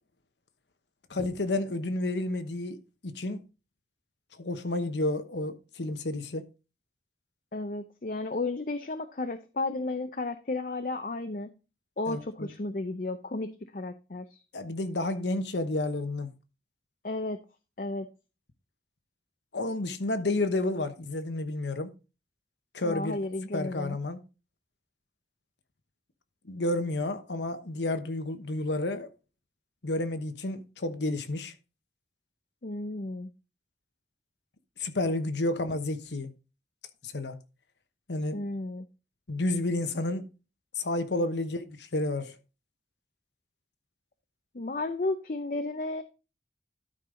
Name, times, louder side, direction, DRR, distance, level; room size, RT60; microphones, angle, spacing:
voice 1, 1.1-2.8 3.0-3.4 4.4-6.4 12.1-12.5 14.5-16.3 19.5-21.9 22.7-23.2 23.5-24.2 26.4-29.1 29.8-31.5 34.8-36.3 37.0-37.4 38.1-38.4 39.3-40.2 40.8-42.4, left 2 dB, 85° left, 1.1 m, -30 dB
voice 2, 7.5-11.5 12.0-14.4 17.0-17.4 17.8-18.1 22.8-24.0 32.6-33.3 38.3-38.9 44.5-46.0, left 2 dB, 50° left, 0.6 m, -33 dB
12.5 x 5.3 x 3.8 m
head